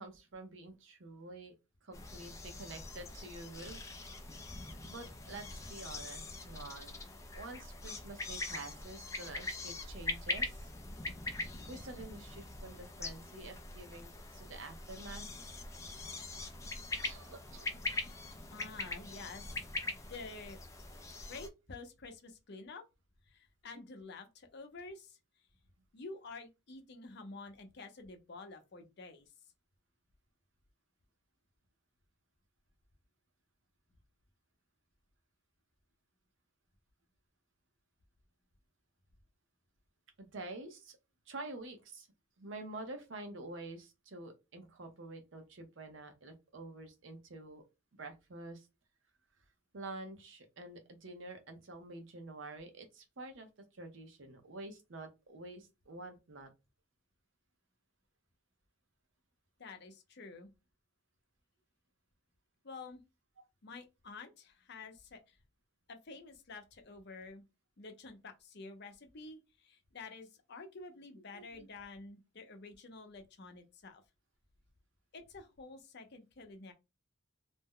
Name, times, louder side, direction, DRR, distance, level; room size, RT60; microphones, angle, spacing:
voice 1, 0.0-1.5 1.8-3.8 4.9-10.7 11.7-15.3 17.0-17.8 40.2-41.0 41.3-42.1 42.4-47.6 47.9-48.7 49.7-53.5 53.7-56.5 71.3-71.7, right 2 dB, 65° right, 0.7 m, -48 dB
sound 1, 1.9-21.5, left 2 dB, 15° left, 0.4 m, -43 dB
voice 2, 18.5-20.6 21.3-22.8 23.3-25.2 25.9-29.3 59.6-60.5 62.6-63.0 63.6-65.4 65.9-67.4 67.8-74.0 75.1-76.7, left 3 dB, 55° left, 0.7 m, -49 dB
2.6 x 2.1 x 3.6 m
head